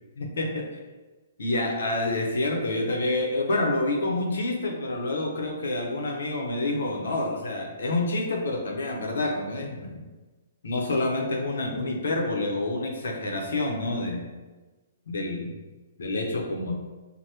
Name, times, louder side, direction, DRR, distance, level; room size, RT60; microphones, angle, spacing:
voice 1, 0.2-0.7 1.4-10.0 10.6-14.2 15.1-15.5 16.0-16.8, left 2 dB, 80° left, 0 dB, 0.7 m, -28 dB
3.3 x 2.1 x 2.8 m, 1.2 s
hypercardioid pair, 170°, 0 cm